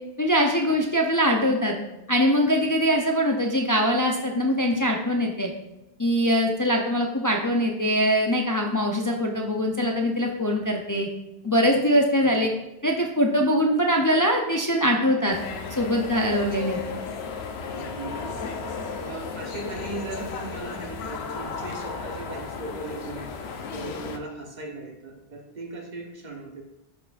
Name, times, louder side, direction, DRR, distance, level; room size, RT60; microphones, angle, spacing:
voice 1, 0.2-1.8 2.1-5.5 6.0-11.1 11.4-12.5 12.8-15.4 15.8-16.8, equal, 25° left, 0 dB, 0.4 m, -22 dB
sound 1, 15.3-24.2, left 5 dB, 75° left, 0.9 m, -34 dB
voice 2, 17.7-18.6 19.0-23.3 23.7-26.6, right 2 dB, 45° right, 1 dB, 1.1 m, -38 dB
11.0 x 4.5 x 2.5 m, 0.94 s
omnidirectional pair, 1.1 m